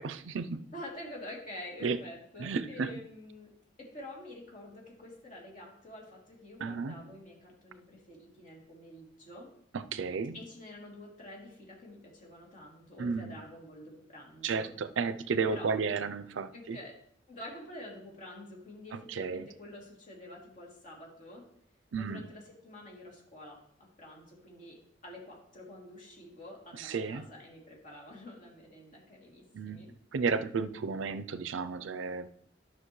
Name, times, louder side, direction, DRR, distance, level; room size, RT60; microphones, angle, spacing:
voice 1, 0.0-0.7 1.8-2.0 2.4-2.9 6.6-7.1 9.7-10.4 13.0-13.4 14.4-16.8 18.9-19.5 21.9-22.3 26.8-27.3 29.5-32.3, right 5 dB, 85° right, 0.5 m, -33 dB
voice 2, 0.7-9.5 10.3-14.7 15.5-15.7 16.5-17.0 17.3-21.5 21.9-29.9, left 1 dB, 45° left, 2.8 m, -48 dB
12.0 x 6.1 x 3.1 m
head